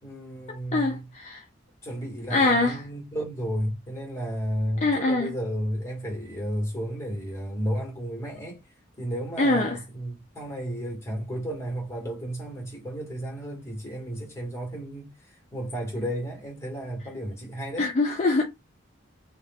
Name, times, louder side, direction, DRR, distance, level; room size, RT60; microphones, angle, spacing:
voice 1, 0.0-1.0 1.8-8.6 9.0-17.9, equal, 15° left, 1.2 m, -33 dB
voice 2, 0.7-1.4 2.3-2.8 4.8-5.3 9.4-9.8 17.8-18.4, left 2 dB, 35° left, 0.4 m, -23 dB
2.5 x 2.1 x 3.3 m
head